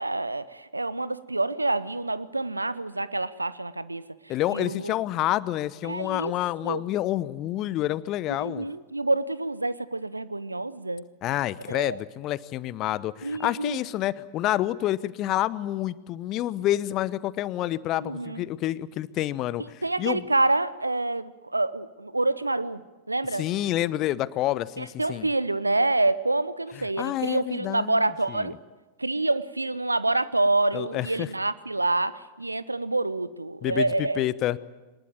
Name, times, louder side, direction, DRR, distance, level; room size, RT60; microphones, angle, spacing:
voice 1, 0.0-4.0 4.5-4.9 5.8-6.3 6.6-6.8 8.4-11.0 11.7-12.0 13.2-13.8 18.0-18.4 19.8-22.8 23.1-23.5 24.8-28.6 29.0-34.2, right 2 dB, 85° right, 17 dB, 0.9 m, -27 dB
voice 2, 4.3-8.7 11.2-20.2 23.3-25.3 26.8-28.0 28.3-28.5 30.7-31.3 33.6-34.6, left 14 dB, 35° left, 19 dB, 0.9 m, -28 dB
23.0 x 20.0 x 9.4 m, 1.2 s
figure-of-eight pair, 90°, 0 cm